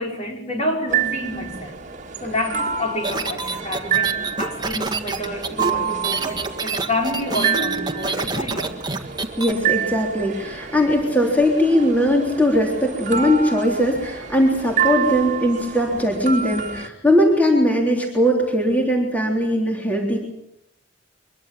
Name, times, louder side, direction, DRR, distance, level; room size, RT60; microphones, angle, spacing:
voice 1, 0.0-1.8 2.2-8.7, left 1 dB, 35° left, 1 dB, 5.4 m, -28 dB
sound 1, 0.9-16.9, right 7 dB, 40° right, 1.9 m, -28 dB
sound 2, 3.0-9.5, right 3 dB, 20° right, 1.7 m, -26 dB
voice 2, 9.4-20.2, equal, 10° left, -1 dB, 3.6 m, -19 dB
24.5 x 22.0 x 7.6 m, 0.82 s
head